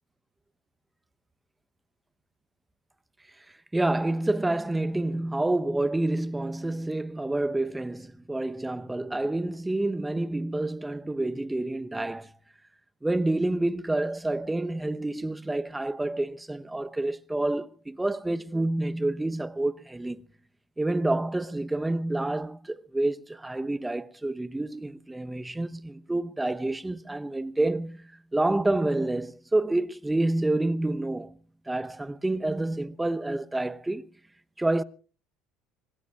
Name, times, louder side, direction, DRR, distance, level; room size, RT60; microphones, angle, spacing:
voice 1, 3.7-12.3 13.0-20.2 20.8-28.0 28.3-31.4 31.7-34.1 34.6-34.8, right 2 dB, 10° right, 0.9 m, -28 dB
25.0 x 20.5 x 2.4 m
hypercardioid pair, 70°, 0 cm